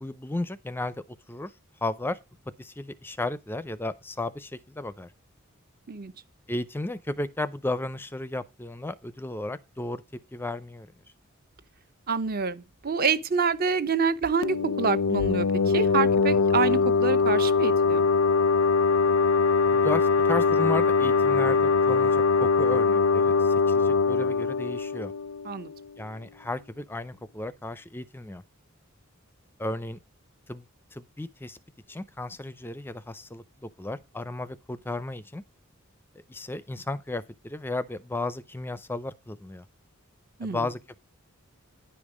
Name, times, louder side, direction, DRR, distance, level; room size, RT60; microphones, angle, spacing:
voice 1, 0.0-1.0 1.3-1.5 1.8-2.2 2.6-5.1 6.5-10.0 10.3-10.9 19.7-25.1 26.0-28.4 29.6-30.0 30.5-30.7 30.9-31.6 31.9-33.4 33.8-35.4 36.3-39.6 40.4-41.0, left 2 dB, 10° left, 0.4 m, -34 dB
voice 2, 12.1-18.0 25.4-25.7 40.4-40.7, right 5 dB, 45° right, 0.7 m, -27 dB
sound 1, 14.4-25.8, left 4 dB, 80° left, 0.5 m, -22 dB
10.5 x 5.4 x 4.8 m
head